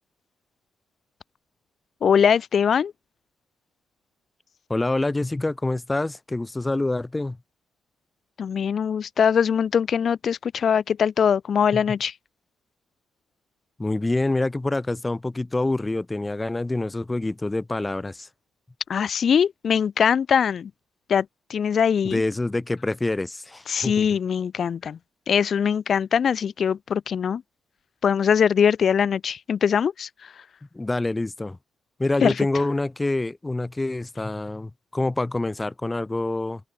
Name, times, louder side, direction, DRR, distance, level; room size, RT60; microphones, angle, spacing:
voice 1, 2.0-2.9 8.4-12.1 18.9-20.7 21.1-22.2 23.7-25.0 25.3-27.4 28.0-30.1 32.2-32.3, left 7 dB, 60° left, 0.5 m, -22 dB
voice 2, 4.7-7.4 11.7-11.8 13.8-18.3 22.0-24.1 30.7-31.6 32.0-36.6, left 2 dB, 20° left, 5.0 m, -26 dB
open air
supercardioid pair, 55°, 0 cm